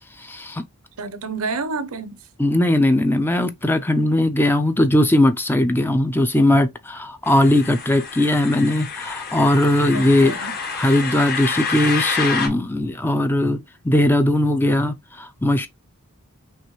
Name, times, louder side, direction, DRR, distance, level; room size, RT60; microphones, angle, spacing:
voice 1, 0.2-0.6 2.4-15.7, left 1 dB, 10° left, 0.5 m, -19 dB
voice 2, 1.0-2.2 9.9-10.5, right 4 dB, 75° right, 0.8 m, -29 dB
sound 1, 7.2-12.5, left 5 dB, 45° left, 1.3 m, -28 dB
5.4 x 3.2 x 3.1 m
head